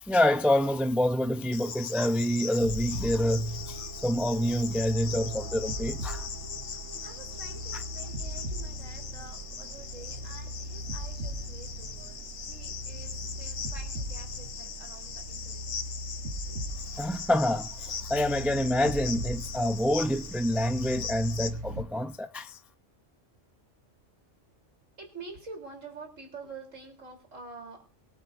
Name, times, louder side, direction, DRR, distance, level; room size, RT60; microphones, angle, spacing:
voice 1, 0.0-6.3 17.0-22.6, left 1 dB, ahead, 0.3 m, -27 dB
Cricket, 1.5-21.5, left 7 dB, 70° left, 1.3 m, -40 dB
sound 1, 2.6-21.8, right 1 dB, 65° right, 1.7 m, -39 dB
sound 2, 3.3-14.5, right 4 dB, 50° left, 2.8 m, -53 dB
voice 2, 6.6-15.8 16.5-16.6 25.0-27.9, right 3 dB, 85° right, 4.2 m, -48 dB
24.0 x 8.3 x 2.7 m
omnidirectional pair, 1.3 m